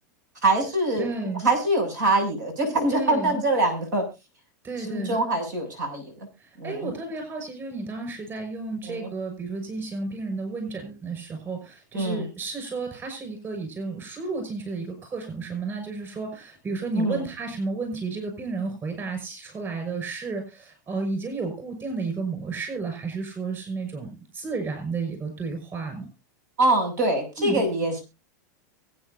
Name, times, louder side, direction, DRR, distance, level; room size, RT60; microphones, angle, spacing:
voice 1, 0.4-1.1 1.4-4.0 4.8-6.3 6.6-6.9 8.9-9.1 11.9-12.3 17.0-17.2 26.6-28.0, right 2 dB, 85° right, 4 dB, 7.2 m, -24 dB
voice 2, 1.0-1.4 2.9-3.3 4.6-5.2 6.4-26.1 27.4-27.6, right 4 dB, 25° right, 5 dB, 5.8 m, -32 dB
23.5 x 8.9 x 2.7 m, 0.27 s
supercardioid pair, 125°, 10 cm